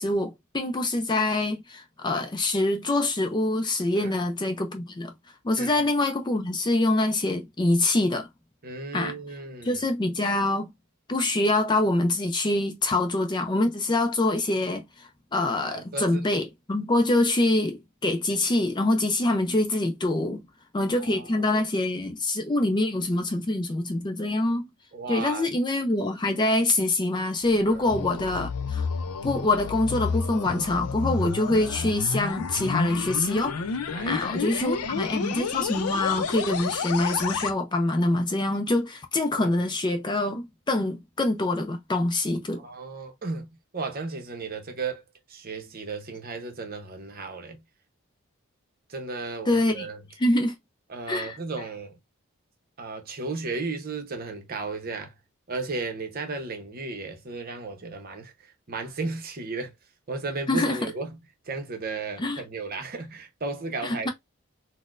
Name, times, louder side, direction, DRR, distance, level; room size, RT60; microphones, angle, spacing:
voice 1, 0.0-5.1 5.4-8.3 8.9-9.1 9.6-10.7 11.1-20.4 20.7-24.7 25.1-28.9 29.2-33.6 34.1-42.6 49.5-49.9 50.2-50.5 51.1-51.4 60.5-60.8 62.2-62.4 63.8-64.1, left 2 dB, 20° left, 0.4 m, -25 dB
voice 2, 8.6-9.8 15.7-16.3 21.0-21.5 24.9-25.5 27.6-27.8 33.9-35.1 39.3-39.5 42.6-43.5 43.7-45.0 45.3-47.6 48.9-50.0 50.9-52.0 52.8-55.1 55.5-59.7 60.1-61.1 61.5-64.1, right 3 dB, 40° right, 0.7 m, -35 dB
sound 1, 27.4-37.5, left 5 dB, 85° left, 0.5 m, -30 dB
4.1 x 2.1 x 2.4 m
head